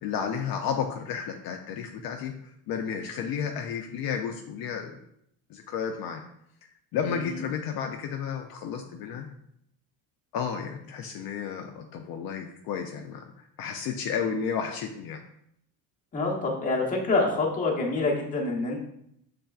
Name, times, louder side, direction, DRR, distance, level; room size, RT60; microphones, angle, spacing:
voice 1, 0.0-4.9 5.5-6.2 6.9-9.3 10.3-13.2 13.6-15.2, left 7 dB, 60° left, 3 dB, 0.5 m, -32 dB
voice 2, 7.1-7.4 16.1-18.8, left 3 dB, 20° left, -2 dB, 0.8 m, -26 dB
6.6 x 3.3 x 2.3 m, 0.74 s
cardioid pair, 165°, 41 cm